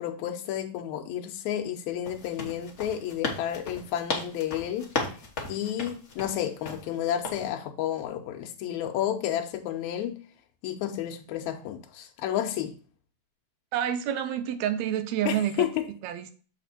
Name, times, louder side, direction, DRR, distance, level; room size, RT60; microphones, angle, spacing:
voice 1, 0.0-4.9 5.5-10.2 10.6-12.7 15.3-15.9, left 11 dB, 85° left, 2.0 m, -31 dB
sound 1, 2.0-6.9 7.2-7.5, left 4 dB, 65° left, 0.6 m, -35 dB
voice 2, 13.7-15.7 16.0-16.3, right 10 dB, 80° right, 1.8 m, -28 dB
7.2 x 4.1 x 4.1 m
omnidirectional pair, 3.3 m